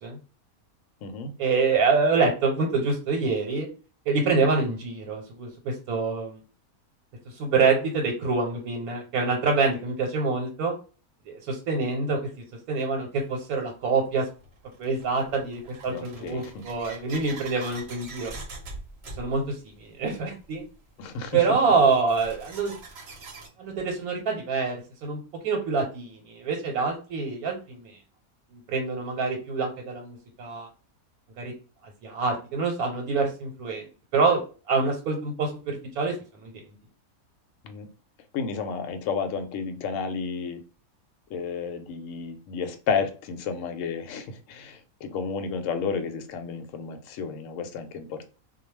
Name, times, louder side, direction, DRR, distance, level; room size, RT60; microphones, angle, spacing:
voice 1, 1.4-3.7 4.1-6.4 7.3-10.7 11.3-12.2 12.7-14.3 14.8-18.3 19.2-20.6 21.3-22.8 23.6-28.0 28.5-30.7 31.4-31.5 32.0-33.9 34.1-36.5, right 4 dB, 85° right, 1 dB, 1.2 m, -26 dB
sound 1, 13.1-13.2 14.1-23.5, right 2 dB, 55° right, 0.9 m, -44 dB
voice 2, 15.9-16.6 21.0-21.4 37.6-37.9 38.3-40.6 41.3-48.3, left 5 dB, 70° left, 6 dB, 0.9 m, -32 dB
2.3 x 2.2 x 3.1 m, 0.36 s
omnidirectional pair, 1.5 m